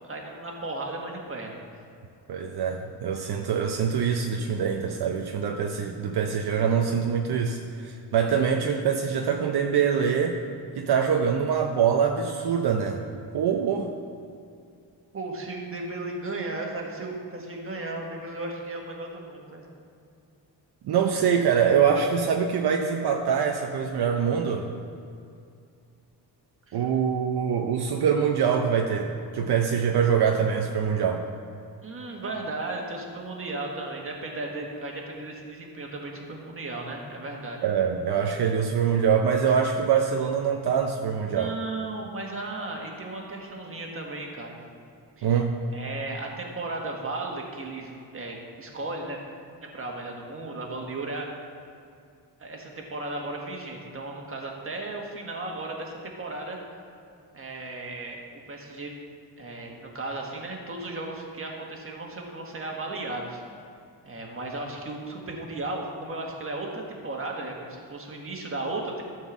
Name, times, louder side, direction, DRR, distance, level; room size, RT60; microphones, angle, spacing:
voice 1, 0.0-1.6 15.1-19.7 26.7-26.9 31.8-37.6 41.2-44.6 45.2-45.3 45.7-49.2 49.6-51.3 52.4-56.6 57.3-58.2 58.5-58.9 59.4-63.4 64.0-69.0, right 2 dB, 30° right, 0 dB, 1.6 m, -35 dB
voice 2, 2.3-10.4 10.8-13.0 13.3-13.9 20.8-24.7 26.7-31.3 37.6-41.5 45.2-45.5, right 7 dB, 65° right, 3 dB, 0.7 m, -24 dB
13.5 x 4.6 x 7.2 m, 2.4 s
wide cardioid pair, 145°, 41 cm